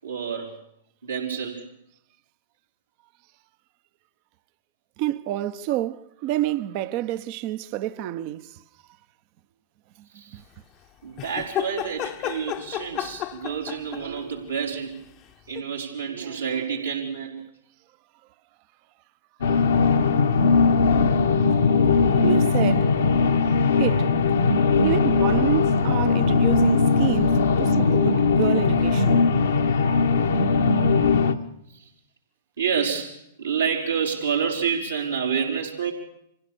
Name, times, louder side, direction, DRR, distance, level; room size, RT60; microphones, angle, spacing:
voice 1, 0.0-0.6 1.0-1.7 10.1-10.4 11.0-14.9 15.5-17.4 20.2-20.8 31.7-31.9 32.6-35.9, right 7 dB, 90° right, 5.0 m, -28 dB
voice 2, 5.0-8.6 10.3-10.4 22.2-23.0 23.8-24.2 24.8-29.2, right 13 dB, 45° right, 0.8 m, -28 dB
sound 1, 11.2-14.2 15.5-15.6, left 12 dB, 35° left, 0.9 m, -32 dB
sound 2, 19.4-31.3, left 4 dB, 70° left, 1.2 m, -19 dB
25.5 x 16.0 x 6.9 m
figure-of-eight pair, 105°, 0 cm